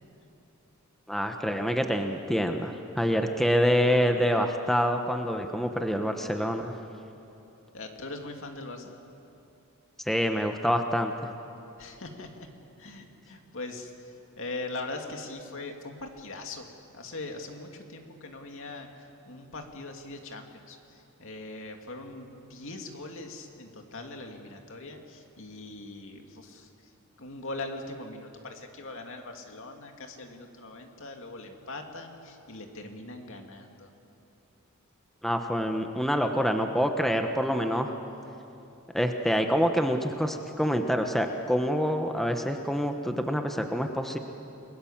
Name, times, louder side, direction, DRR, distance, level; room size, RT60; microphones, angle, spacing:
voice 1, 1.1-6.7 10.1-11.1 35.2-37.9 38.9-44.2, equal, ahead, 5 dB, 1.1 m, -26 dB
voice 2, 7.7-8.9 11.8-12.5 12.8-16.7 16.9-26.7 27.2-33.9, left 2 dB, 65° left, 3 dB, 2.5 m, -41 dB
29.5 x 21.5 x 7.4 m, 2.9 s
head